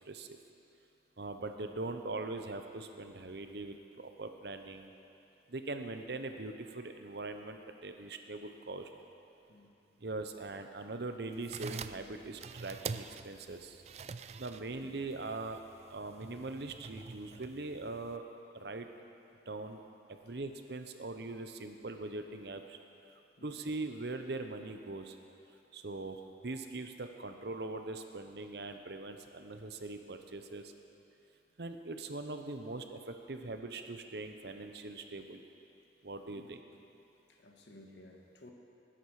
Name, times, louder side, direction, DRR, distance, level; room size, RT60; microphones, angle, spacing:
voice 1, 0.1-0.4 1.2-4.9 5.5-8.9 10.0-13.8 14.4-15.6 15.9-18.3 18.5-18.9 19.5-19.8 20.1-22.8 23.4-25.2 25.7-30.7 31.6-35.4 36.0-36.6, right 2 dB, 65° right, 6 dB, 0.9 m, -41 dB
sound 1, 11.3-18.2, right 5 dB, 35° right, 0.4 m, -46 dB
voice 2, 37.3-38.5, left 1 dB, 75° left, 1 dB, 1.6 m, -56 dB
20.0 x 10.0 x 4.9 m, 2.8 s
head